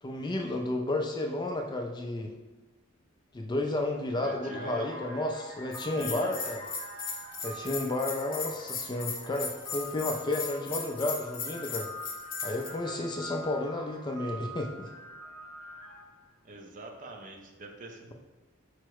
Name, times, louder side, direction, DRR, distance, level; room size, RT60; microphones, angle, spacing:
voice 1, 0.0-2.3 3.3-6.6 7.4-11.9 12.4-14.9, left 2 dB, 20° left, 3 dB, 0.3 m, -32 dB
sound 1, 3.7-3.8 4.1-16.2, equal, 80° right, 0.7 m, -45 dB
voice 2, 4.1-4.9 5.9-6.5 16.4-18.1, right 2 dB, 40° right, 3 dB, 0.5 m, -44 dB
Bell, 5.7-12.7, left 5 dB, 40° left, 0.7 m, -37 dB
4.6 x 2.0 x 4.6 m, 1.1 s
head